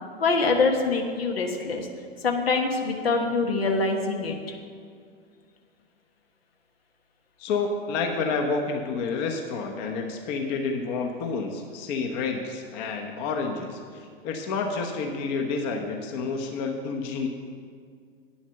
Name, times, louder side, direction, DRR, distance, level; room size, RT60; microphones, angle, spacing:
voice 1, 0.2-1.9 2.2-4.4, left 3 dB, 70° left, 3 dB, 1.3 m, -24 dB
voice 2, 7.4-13.8 14.2-17.3, left 4 dB, 45° left, 3 dB, 1.2 m, -29 dB
9.3 x 7.1 x 5.9 m, 2.1 s
figure-of-eight pair, 100°, 31 cm